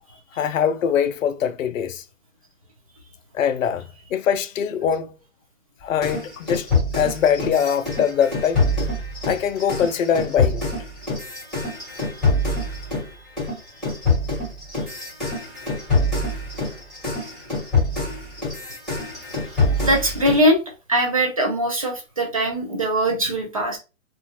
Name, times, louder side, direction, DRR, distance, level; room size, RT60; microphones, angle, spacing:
voice 1, 0.3-2.0 3.3-5.1 5.8-6.7 7.0-8.7 9.2-10.7 19.7-19.9, left 8 dB, 70° left, 0.5 m, -22 dB
sound 1, 6.0-13.1 13.4-20.5, left 2 dB, ahead, 1.3 m, -25 dB
voice 2, 19.4-20.6 20.9-23.8, equal, 30° right, 0.4 m, -21 dB
2.4 x 2.4 x 2.8 m
hypercardioid pair, 155°, 41 cm